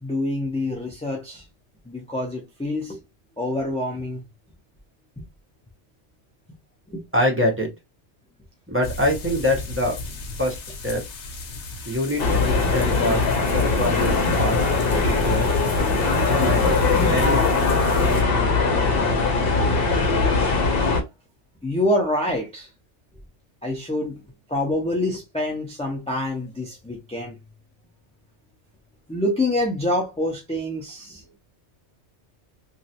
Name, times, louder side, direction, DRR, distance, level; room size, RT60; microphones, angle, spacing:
voice 1, 0.0-1.4 1.9-3.0 3.4-4.2 5.2-5.3 6.9-7.0 16.5-17.3 19.4-19.5 21.6-22.7 23.6-24.2 24.5-27.4 29.1-31.4, left 1 dB, 10° left, 0.4 m, -27 dB
voice 2, 7.1-7.7 8.7-10.0 10.4-11.0 11.8-13.2 13.5-14.6 14.9-15.5 16.2-16.6 17.1-17.4, left 1 dB, 15° right, 0.8 m, -25 dB
sound 1, 8.8-18.2, left 3 dB, 85° left, 1.0 m, -37 dB
sound 2, 12.2-21.0, left 3 dB, 60° left, 1.0 m, -20 dB
3.1 x 2.4 x 2.8 m
omnidirectional pair, 1.2 m